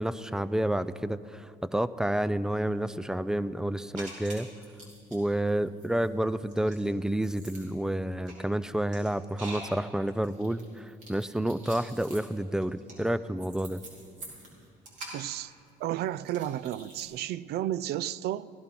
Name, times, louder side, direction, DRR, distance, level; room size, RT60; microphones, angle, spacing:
voice 1, 0.0-4.5 5.1-13.8, right 1 dB, 5° right, 0.3 m, -30 dB
sound 1, 3.9-5.2 5.5-17.0, right 2 dB, 50° right, 4.1 m, -46 dB
voice 2, 15.1-15.5 15.8-18.5, right 12 dB, 70° right, 0.4 m, -32 dB
16.0 x 11.5 x 5.9 m
cardioid pair, 110°, 17 cm